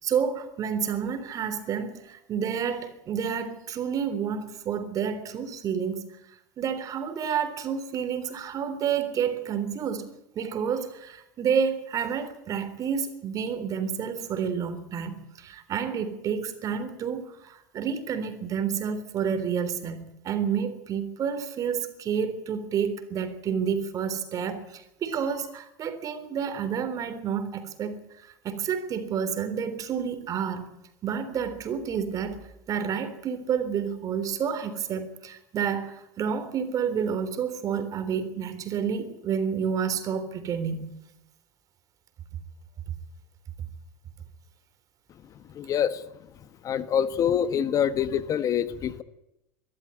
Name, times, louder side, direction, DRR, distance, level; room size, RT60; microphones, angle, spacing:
voice 1, 0.0-6.1 6.6-10.1 10.3-28.0 28.4-30.7 31.0-32.4 32.7-41.0, right 7 dB, 40° right, 3.5 m, -29 dB
voice 2, 45.5-46.0 46.6-49.0, left 8 dB, 35° left, 1.2 m, -25 dB
22.5 x 13.0 x 9.9 m
supercardioid pair, 120°, 9 cm